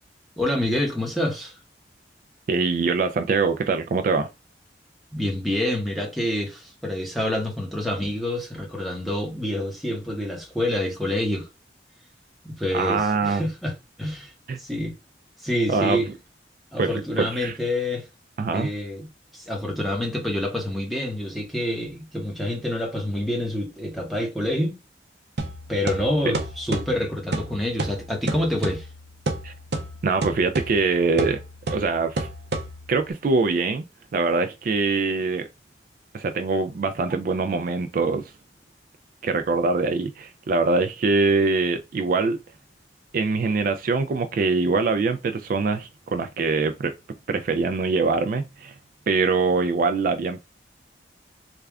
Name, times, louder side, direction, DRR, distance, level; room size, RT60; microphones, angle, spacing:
voice 1, 0.4-1.6 5.1-11.5 12.4-14.3 14.6-14.9 15.4-16.1 16.7-18.1 18.5-19.1 19.3-24.8 25.7-28.9, left 1 dB, ahead, 0.9 m, -27 dB
voice 2, 2.5-4.3 12.7-13.4 14.5-14.6 15.7-16.0 16.8-17.5 18.4-18.7 26.2-26.3 29.4-29.5 30.0-31.4 31.7-32.3 32.9-33.8 34.1-35.5 36.1-38.3 39.2-42.4 43.1-46.9 47.3-48.7 49.1-50.4, right 4 dB, 50° right, 0.3 m, -23 dB
sound 1, 25.4-33.1, right 2 dB, 65° right, 0.7 m, -31 dB
3.3 x 2.3 x 3.4 m
head